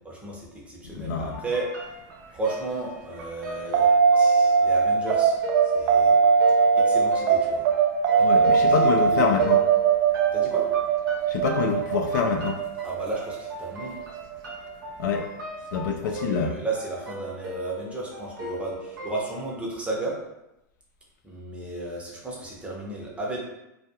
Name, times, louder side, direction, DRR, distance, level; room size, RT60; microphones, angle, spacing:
voice 1, 0.0-1.7 2.3-6.2 6.8-7.6 8.4-9.4 10.3-10.7 12.8-14.0 16.0-20.1 21.2-23.4, right 2 dB, 10° right, -3 dB, 0.7 m, -34 dB
voice 2, 0.8-1.3 8.2-9.6 11.3-12.6 15.0-15.3 15.7-16.5, left 6 dB, 70° left, 4 dB, 0.4 m, -26 dB
sound 1, 1.3-19.6, left 1 dB, 85° right, 0.7 m, -38 dB
sound 2, 3.7-14.5, right 6 dB, 45° right, 0.4 m, -21 dB
2.3 x 2.2 x 2.8 m, 0.88 s
hypercardioid pair, 110°, 10 cm